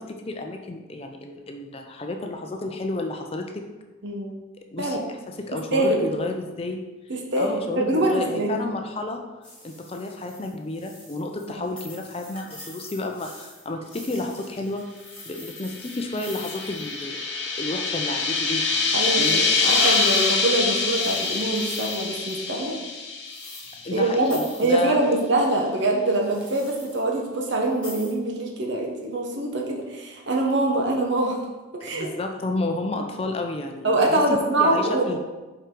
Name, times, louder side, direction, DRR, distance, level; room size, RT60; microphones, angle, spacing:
voice 1, 0.0-3.6 4.7-6.8 7.4-9.2 9.6-14.8 15.3-17.2 17.6-19.4 23.8-25.0 31.9-35.2, left 2 dB, 30° left, 4 dB, 0.4 m, -31 dB
voice 2, 5.7-6.1 7.3-8.6 11.5-11.7 18.9-22.8 23.9-31.4 31.7-32.1 33.8-35.0, right 2 dB, 65° right, 0 dB, 1.0 m, -24 dB
sound 1, 9.4-17.2 19.2-22.4 23.2-24.0 24.2-24.9 26.2-27.1 27.7-28.1, left 1 dB, 5° left, 1.6 m, -45 dB
sound 2, 15.7-24.0, left 4 dB, 60° left, 0.8 m, -25 dB
5.5 x 4.8 x 3.8 m, 1.2 s
head